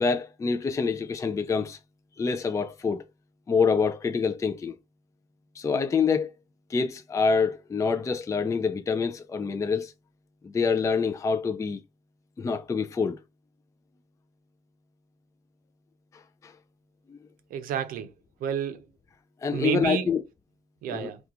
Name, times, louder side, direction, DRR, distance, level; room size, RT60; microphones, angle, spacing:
voice 1, 0.0-1.8 2.2-3.0 3.5-4.8 5.6-6.3 6.7-9.9 10.4-11.8 12.4-13.2 16.4-16.5 17.1-17.2 19.4-20.2 20.9-21.1, left 5 dB, 20° left, 0.3 m, -26 dB
voice 2, 17.5-18.1 18.4-18.8 19.5-20.1 20.8-21.2, right 9 dB, 85° right, 0.5 m, -29 dB
2.4 x 2.3 x 2.8 m
cardioid pair, 75°, 14 cm